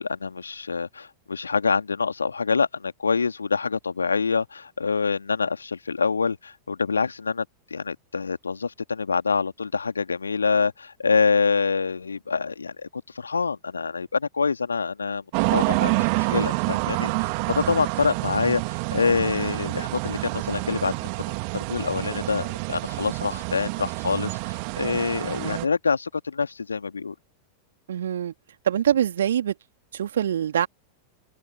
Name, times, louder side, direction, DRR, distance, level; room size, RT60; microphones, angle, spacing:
voice 1, 0.0-7.5 7.7-12.9 13.1-15.2 15.5-20.9 21.5-27.1, left 5 dB, 75° left, 2.4 m, -26 dB
sound 1, 15.3-25.7, right 39 dB, 45° right, 2.6 m, -28 dB
voice 2, 27.9-28.3 28.6-29.5 29.9-30.7, right 9 dB, 65° right, 2.8 m, -24 dB
figure-of-eight pair, 90°, 0 cm